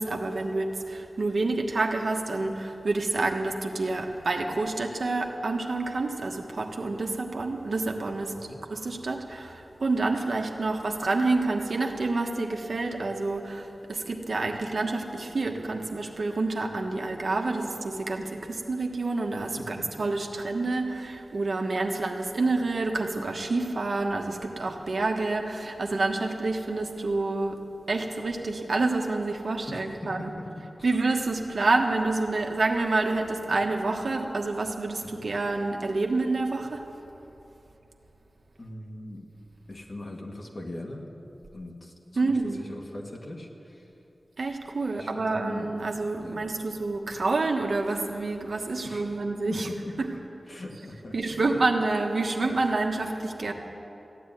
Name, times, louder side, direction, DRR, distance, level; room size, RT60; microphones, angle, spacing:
voice 1, 0.0-8.3 8.7-27.6 27.9-30.3 30.8-36.9 42.2-42.6 44.4-49.7 50.0-50.1 51.1-53.5, right 3 dB, 70° right, 2 dB, 1.4 m, -28 dB
voice 2, 19.6-19.9 29.7-30.9 35.0-35.3 38.6-39.3 39.7-41.1 41.5-43.9 44.9-45.7 46.2-46.4 48.8-49.2 49.5-50.2 50.5-51.4 52.6-52.7, left 1 dB, 50° left, 0 dB, 2.0 m, -41 dB
15.0 x 10.5 x 9.3 m, 3.0 s
wide cardioid pair, 80°, 0 cm